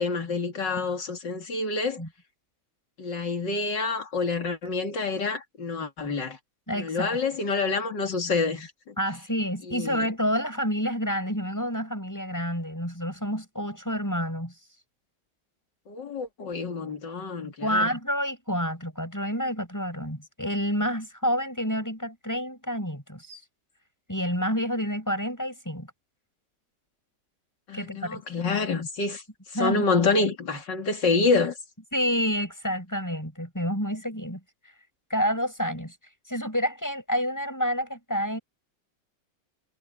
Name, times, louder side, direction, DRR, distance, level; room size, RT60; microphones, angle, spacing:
voice 1, 0.0-2.0 3.0-6.4 6.7-8.9 9.7-10.1 15.9-17.9 27.7-29.2 29.6-31.6, left 4 dB, 90° left, 3.2 m, -27 dB
voice 2, 6.7-7.2 9.0-14.5 17.6-23.4 24.1-25.9 27.7-28.2 29.5-30.0 31.9-34.4 35.1-35.9 36.3-38.4, equal, 10° left, 7.0 m, -28 dB
omnidirectional pair, 1.9 m